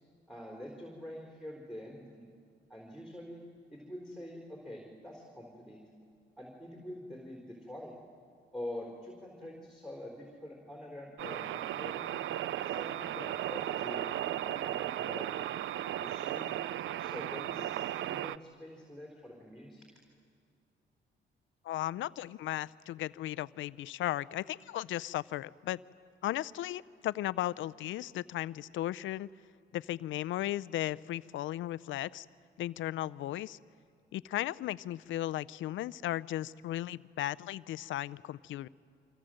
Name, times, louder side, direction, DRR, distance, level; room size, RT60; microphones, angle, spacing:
voice 1, 0.3-2.3 2.7-3.4 3.7-5.8 6.4-8.0 8.5-12.1 12.6-14.1 14.4-15.3 16.0-16.5 17.0-19.8, left 1 dB, ahead, 0 dB, 4.1 m, -45 dB
sound 1, 11.2-18.4, right 12 dB, 70° right, 0.6 m, -36 dB
voice 2, 21.6-25.8 26.2-29.3 29.7-32.3 32.6-33.6 34.1-38.7, left 14 dB, 75° left, 17 dB, 0.6 m, -36 dB
28.0 x 25.5 x 7.8 m, 2.3 s
cardioid pair, 90°, 20 cm